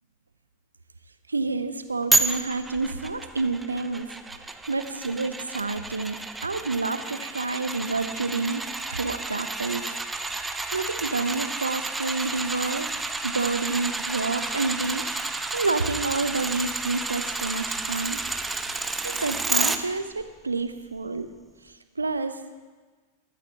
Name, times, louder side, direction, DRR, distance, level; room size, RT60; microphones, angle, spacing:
voice 1, 1.3-9.9 10.4-12.9 13.2-15.1 15.5-18.2 19.0-21.3 21.6-22.6, right 3 dB, 80° right, 11 dB, 0.8 m, -29 dB
sound 1, 2.1-19.8 20.2-20.3, right 3 dB, 10° right, 0.8 m, -30 dB
21.5 x 12.5 x 2.9 m, 1.4 s
figure-of-eight pair, 90°, 0 cm